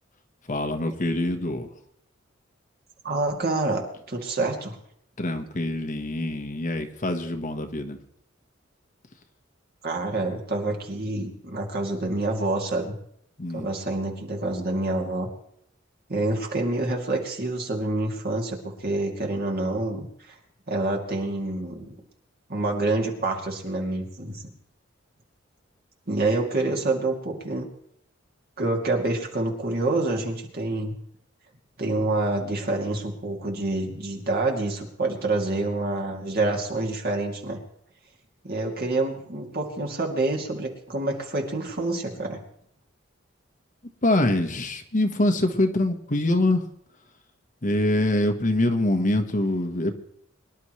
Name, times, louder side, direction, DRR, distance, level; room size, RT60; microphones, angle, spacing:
voice 1, 0.5-1.7 5.2-8.0 13.4-13.7 44.0-46.6 47.6-49.9, left 1 dB, 40° left, 6 dB, 1.2 m, -24 dB
voice 2, 3.0-4.8 9.8-12.9 13.5-15.3 16.1-20.1 20.7-21.9 22.5-24.5 26.1-27.7 28.6-30.9 31.8-37.6 38.4-42.4, right 2 dB, 50° right, 1 dB, 2.7 m, -27 dB
24.0 x 11.5 x 3.2 m, 0.70 s
head